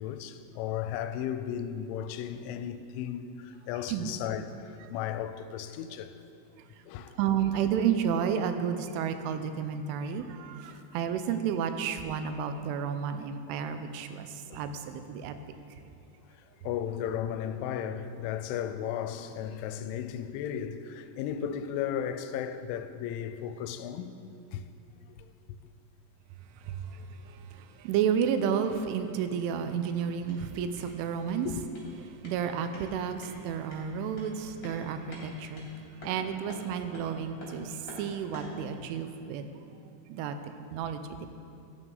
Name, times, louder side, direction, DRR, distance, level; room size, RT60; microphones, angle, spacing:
voice 1, 0.0-6.1 6.9-7.2 14.5-14.6 16.6-24.2 24.5-24.6 25.2-25.3 31.5-31.6, left 9 dB, 85° left, 2.9 m, -35 dB
voice 2, 7.1-15.3 15.7-15.8 26.6-31.5 32.2-35.7 36.0-39.5 40.1-41.3, right 8 dB, 85° right, 3.2 m, -31 dB
sound 1, 29.6-38.6, left 1 dB, 30° left, 3.1 m, -49 dB
12.5 x 11.5 x 3.9 m
omnidirectional pair, 5.5 m